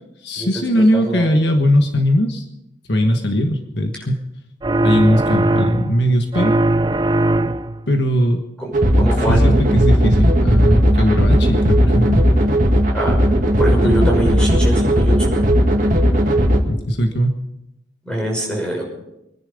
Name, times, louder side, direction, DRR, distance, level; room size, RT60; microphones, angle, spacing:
voice 1, 0.2-2.4 2.9-4.2 4.8-6.6 7.9-8.4 9.3-12.2 13.8-13.9 16.6-17.4, equal, 65° left, 4 dB, 1.4 m, -19 dB
voice 2, 0.9-1.3 8.6-8.7 9.0-9.4 12.9-13.2 13.6-15.4 18.0-18.8, right 1 dB, 5° left, -2 dB, 5.9 m, -23 dB
sound 1, 4.6-6.0 6.3-7.8, right 1 dB, 20° right, 0.5 m, -19 dB
sound 2, 8.7-16.6, equal, 45° right, 2.1 m, -15 dB
25.5 x 10.5 x 5.2 m, 0.87 s
head